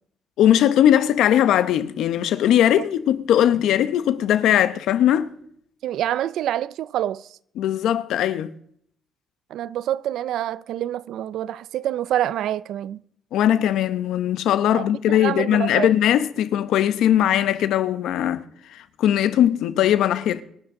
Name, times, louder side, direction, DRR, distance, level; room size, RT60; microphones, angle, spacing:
voice 1, 0.4-5.3 7.6-8.5 13.3-18.4 18.7-20.4, left 11 dB, 80° left, 0.9 m, -19 dB
voice 2, 5.8-7.3 9.5-13.0 14.7-15.9, right 12 dB, 75° right, 0.5 m, -26 dB
25.5 x 11.0 x 3.7 m
cardioid pair, 155°, 0 cm